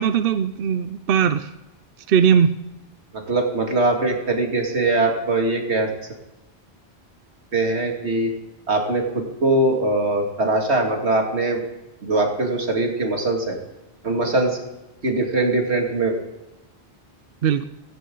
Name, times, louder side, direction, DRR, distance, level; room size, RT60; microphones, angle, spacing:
voice 1, 0.0-1.5 2.1-2.6 17.4-17.6, right 7 dB, 65° right, 11 dB, 0.8 m, -19 dB
voice 2, 3.3-5.9 7.5-8.3 8.7-11.6 12.0-13.6 14.0-14.6 15.0-16.2, right 2 dB, 80° right, 1 dB, 2.7 m, -21 dB
16.5 x 15.5 x 3.9 m, 0.99 s
omnidirectional pair, 1.1 m